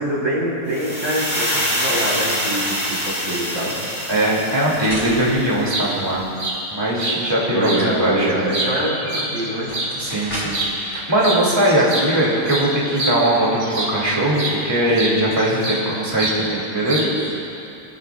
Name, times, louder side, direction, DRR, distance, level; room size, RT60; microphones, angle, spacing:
voice 1, 0.0-3.7 7.5-9.8, right 1 dB, 75° right, -5 dB, 4.0 m, -24 dB
sound 1, 0.7-5.7, equal, 30° left, 3.1 m, -25 dB
voice 2, 4.1-6.2 6.7-8.3 10.0-17.1, right 1 dB, 15° right, -5 dB, 2.4 m, -20 dB
sound 2, 4.2-6.6 9.0-9.1 9.5-10.7, equal, 15° left, 4.1 m, -34 dB
sound 3, 5.7-5.9 6.4-6.6 7.0-7.2 7.6-7.8 8.3-9.9 10.5-10.7 11.2-11.4 11.7-14.0 14.4-14.6 15.0-15.9 16.2-16.4 16.9-17.3, right 2 dB, 55° right, 4.5 m, -26 dB
27.0 x 14.0 x 2.4 m, 2.7 s
omnidirectional pair, 1.7 m